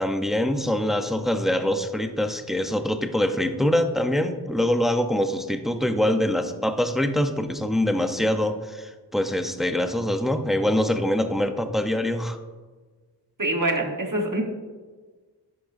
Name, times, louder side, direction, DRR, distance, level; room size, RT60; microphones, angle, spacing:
voice 1, 0.0-12.4, left 1 dB, ahead, 7 dB, 0.6 m, -24 dB
voice 2, 13.4-14.4, right 1 dB, 50° right, 1 dB, 1.3 m, -25 dB
11.0 x 7.8 x 2.6 m, 1.4 s
wide cardioid pair, 45°, 42 cm